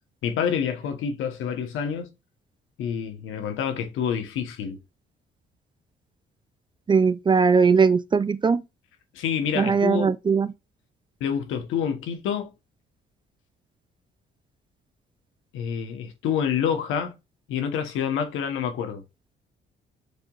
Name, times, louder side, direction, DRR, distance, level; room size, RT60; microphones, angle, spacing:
voice 1, 0.2-2.1 2.8-4.8 9.1-10.1 11.2-12.5 15.5-17.1 17.5-19.0, left 7 dB, 90° left, 1.1 m, -27 dB
voice 2, 6.9-8.6 9.6-10.5, right 5 dB, 25° right, 0.3 m, -20 dB
6.6 x 2.9 x 2.4 m
cardioid pair, 90°, 20 cm